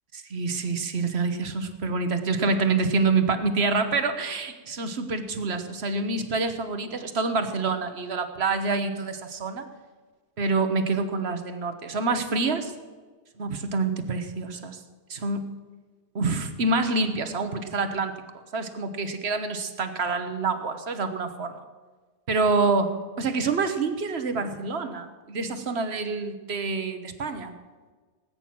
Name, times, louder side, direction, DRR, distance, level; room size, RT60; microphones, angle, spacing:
voice 1, 0.1-9.6 10.4-12.7 13.4-14.8 15.1-15.5 16.1-18.2 18.5-21.6 22.3-27.5, right 3 dB, 70° right, 8 dB, 1.4 m, -27 dB
18.5 x 9.0 x 6.1 m, 1.4 s
omnidirectional pair, 1.1 m